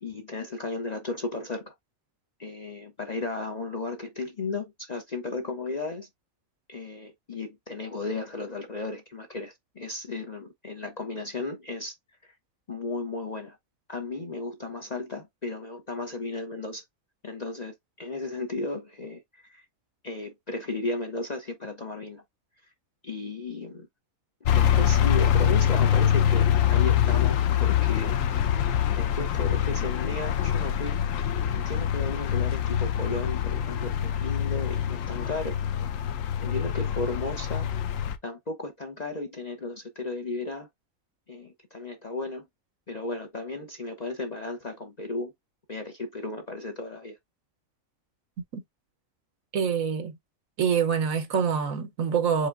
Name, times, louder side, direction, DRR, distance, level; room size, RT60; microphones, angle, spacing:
voice 1, 0.0-1.7 2.4-6.1 6.7-11.9 12.2-12.3 12.7-13.6 13.9-16.8 17.2-19.6 20.0-22.2 23.0-23.9 24.4-28.2 28.9-31.0 31.5-35.6 36.4-37.7 38.2-40.7 41.3-42.5 42.9-45.3 45.7-47.2, left 3 dB, 40° left, 0.7 m, -35 dB
sound 1, 24.4-38.2, left 9 dB, 70° left, 1.0 m, -24 dB
voice 2, 49.5-50.2 50.6-52.5, right 7 dB, 70° right, 1.3 m, -25 dB
4.9 x 3.4 x 2.5 m
omnidirectional pair, 1.5 m